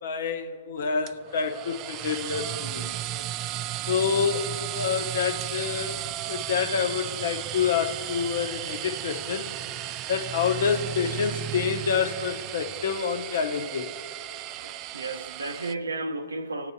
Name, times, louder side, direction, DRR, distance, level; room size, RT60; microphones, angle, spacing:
voice 1, 0.0-2.9 3.9-6.0 6.3-9.5 10.1-13.9, left 6 dB, 65° left, 0.9 m, -27 dB
sound 1, 1.1-15.7, right 13 dB, 35° right, 0.3 m, -34 dB
voice 2, 14.5-16.7, right 2 dB, 90° right, 0.7 m, -33 dB
24.5 x 9.0 x 2.8 m
hypercardioid pair, 125°, 0 cm